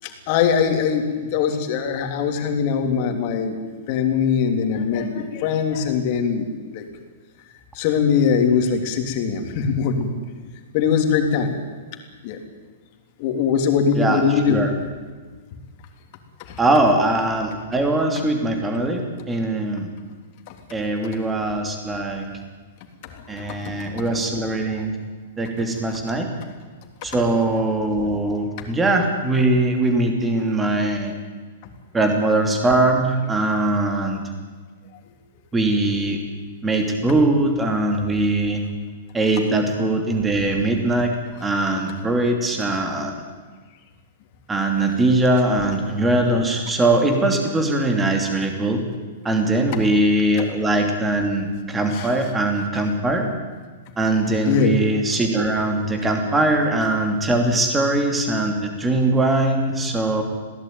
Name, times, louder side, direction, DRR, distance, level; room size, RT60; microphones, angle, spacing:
voice 1, 0.0-3.6 3.9-6.8 7.7-10.1 10.7-11.5 12.2-12.4 13.2-14.6 16.5-16.6 23.1-23.7 51.9-52.1 54.4-54.7, left 7 dB, 35° left, 5 dB, 3.3 m, -21 dB
voice 2, 16.6-19.0 19.3-19.9 20.7-22.2 23.3-24.9 25.4-26.3 27.0-31.1 31.9-34.2 35.5-36.2 36.6-38.6 39.1-41.1 41.4-43.1 44.5-48.8 49.2-53.3 54.0-60.2, right 2 dB, 10° right, 4 dB, 2.8 m, -21 dB
22.0 x 17.5 x 9.5 m, 1.4 s
supercardioid pair, 170°, 0 cm